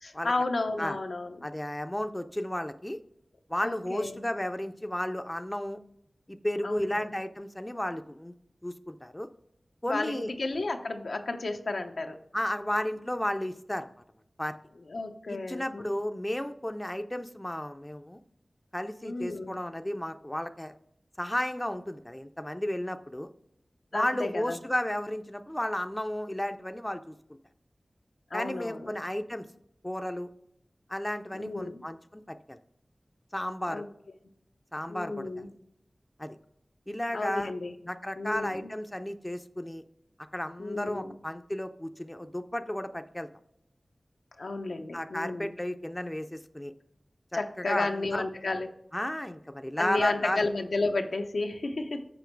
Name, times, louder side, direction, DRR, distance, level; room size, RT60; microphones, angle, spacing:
voice 1, 0.0-1.4 3.6-4.2 6.6-6.9 9.9-12.2 14.9-15.9 19.0-19.6 23.9-24.6 28.3-28.9 31.3-31.8 33.7-33.9 34.9-35.5 37.1-37.7 38.2-38.7 40.6-41.1 44.4-45.6 47.3-48.7 49.8-52.1, left 2 dB, 90° left, 5 dB, 0.7 m, -32 dB
voice 2, 1.4-3.0 3.5-5.8 6.3-8.3 8.6-9.3 9.8-10.3 12.3-13.9 14.4-14.5 15.3-18.2 18.7-20.8 21.2-23.3 23.9-27.1 28.3-29.5 29.8-30.3 30.9-32.6 33.3-33.8 34.7-35.2 36.2-36.4 36.9-37.5 37.9-39.8 40.3-43.3 44.9-46.7 47.6-48.3 48.9-50.4, left 1 dB, 15° left, 8 dB, 0.4 m, -33 dB
7.0 x 5.2 x 4.5 m, 0.76 s
wide cardioid pair, 75°, 0 cm